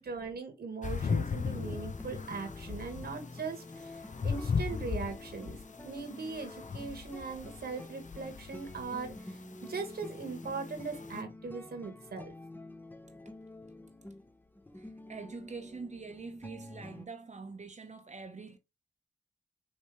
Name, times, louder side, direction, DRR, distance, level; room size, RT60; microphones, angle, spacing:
voice 1, 0.0-4.0 4.2-5.6 5.8-12.3, right 4 dB, 60° right, 1.6 m, -40 dB
sound 1, 0.8-11.2, left 5 dB, 45° left, 0.6 m, -38 dB
sound 2, 1.5-17.1, left 2 dB, 10° left, 0.8 m, -48 dB
voice 2, 14.7-18.6, right 4 dB, 40° right, 1.0 m, -44 dB
5.5 x 3.0 x 3.2 m
supercardioid pair, 40°, 18 cm